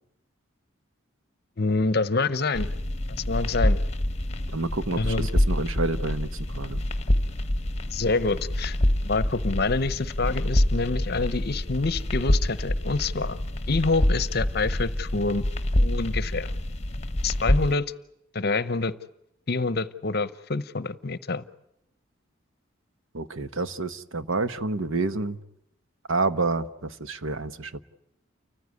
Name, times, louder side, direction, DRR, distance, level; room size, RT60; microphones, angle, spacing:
voice 1, 1.6-2.7 3.3-3.8 5.0-5.3 7.9-8.8 9.0-13.4 13.7-15.4 15.8-16.5 17.2-17.9 18.3-18.9 19.5-21.4, left 3 dB, 50° left, 15 dB, 0.8 m, -26 dB
sound 1, 2.5-17.7, left 1 dB, 30° left, 1.1 m, -26 dB
voice 2, 4.5-6.8 23.1-25.4 26.1-27.8, right 3 dB, 75° right, 12 dB, 1.0 m, -29 dB
29.5 x 15.0 x 9.5 m, 0.83 s
head